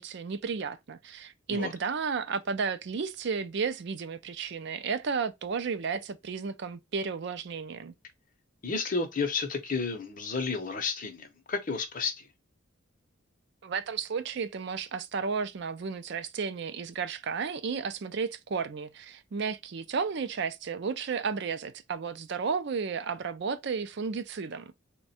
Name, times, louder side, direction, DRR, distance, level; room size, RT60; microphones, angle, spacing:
voice 1, 0.0-7.9 13.6-24.8, right 5 dB, 55° right, 0.4 m, -33 dB
voice 2, 8.6-12.3, left 4 dB, 40° left, 0.7 m, -32 dB
3.5 x 2.2 x 4.1 m
head